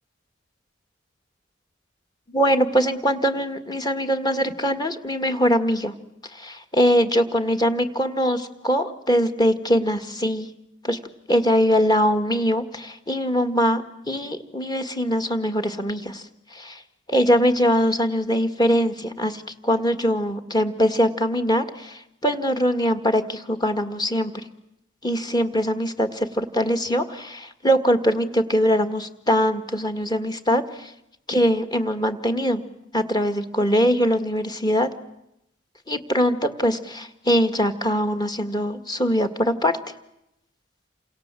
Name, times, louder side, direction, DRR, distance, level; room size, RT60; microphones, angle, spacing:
voice 1, 2.3-5.9 6.3-10.5 10.8-11.0 11.3-16.2 16.5-16.8 17.1-24.3 25.0-30.9 31.3-32.6 32.9-34.9 35.9-39.8, equal, 20° left, 7 dB, 1.9 m, -22 dB
29.0 x 26.5 x 7.6 m, 0.82 s
head